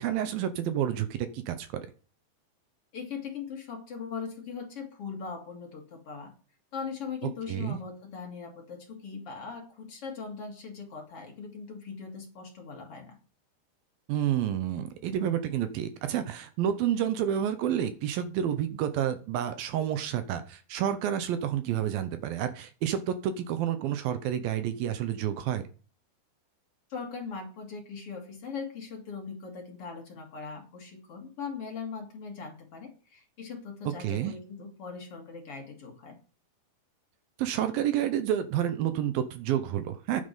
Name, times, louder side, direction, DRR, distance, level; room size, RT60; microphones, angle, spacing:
voice 1, 0.0-1.8 7.5-7.8 14.1-25.6 34.0-34.3 37.4-40.2, right 10 dB, 75° right, 10 dB, 2.4 m, -29 dB
voice 2, 2.9-6.3 6.7-13.2 26.9-36.2, left 5 dB, 45° left, 2 dB, 2.4 m, -40 dB
9.7 x 8.5 x 5.5 m, 0.37 s
omnidirectional pair, 4.7 m